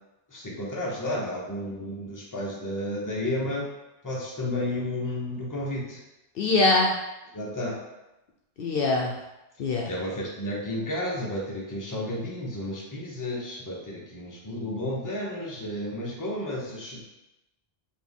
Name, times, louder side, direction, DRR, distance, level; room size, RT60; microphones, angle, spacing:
voice 1, 0.3-3.7 4.0-6.0 7.3-7.8 9.9-17.0, left 1 dB, 20° left, -4 dB, 0.8 m, -32 dB
voice 2, 6.4-6.9 8.6-9.1 9.6-9.9, left 3 dB, 70° left, -1 dB, 0.7 m, -22 dB
4.2 x 2.6 x 3.5 m, 0.96 s
omnidirectional pair, 1.0 m